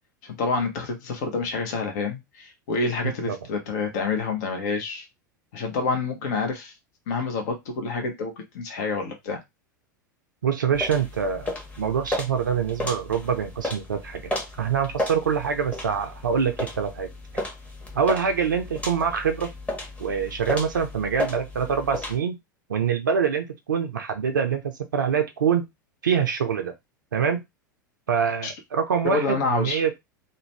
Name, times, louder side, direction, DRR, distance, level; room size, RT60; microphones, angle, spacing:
voice 1, 0.2-5.1 5.5-6.8 7.1-9.4 28.4-28.5 29.0-29.8, left 4 dB, 55° left, 4 dB, 0.8 m, -28 dB
voice 2, 3.0-3.4 10.4-14.2 14.6-17.1 17.3-17.4 17.9-19.5 20.0-22.4 22.7-25.7 26.0-26.7 27.1-27.4 28.1-29.9, right 7 dB, 75° right, 5 dB, 0.4 m, -25 dB
sound 1, 10.7-22.2, left 1 dB, 15° left, 1.0 m, -34 dB
2.5 x 2.2 x 3.2 m, 0.19 s
figure-of-eight pair, 85°, 11 cm